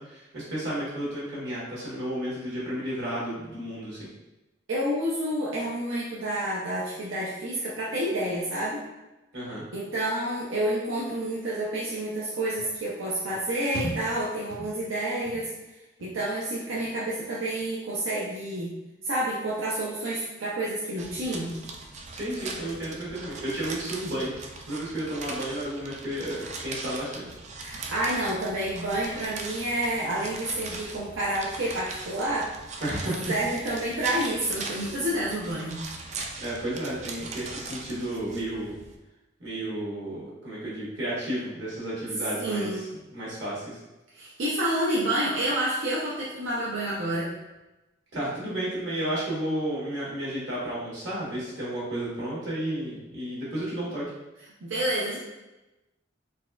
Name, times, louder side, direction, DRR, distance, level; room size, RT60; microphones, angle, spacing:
voice 1, 0.0-4.1 9.3-9.6 22.1-24.3 24.6-27.3 32.8-33.3 36.4-38.8 39.4-42.7 43.1-43.8 48.1-54.0, right 1 dB, 60° right, -7 dB, 1.4 m, -32 dB
voice 2, 4.7-8.8 9.7-15.5 16.0-18.7 19.0-21.6 27.6-32.5 33.3-35.9 42.4-42.9 44.1-47.3 54.6-55.2, right 1 dB, 85° right, -6 dB, 0.6 m, -29 dB
sound 1, 12.6-12.8 13.3-13.4 13.7-14.2 14.5-14.9 15.2-15.6 16.0-16.4 16.7-17.1 17.5-17.6, left 1 dB, 55° left, 0.4 m, -38 dB
sound 2, 21.0-39.0, right 3 dB, 35° right, 0.3 m, -40 dB
4.0 x 2.3 x 2.3 m, 1.0 s
head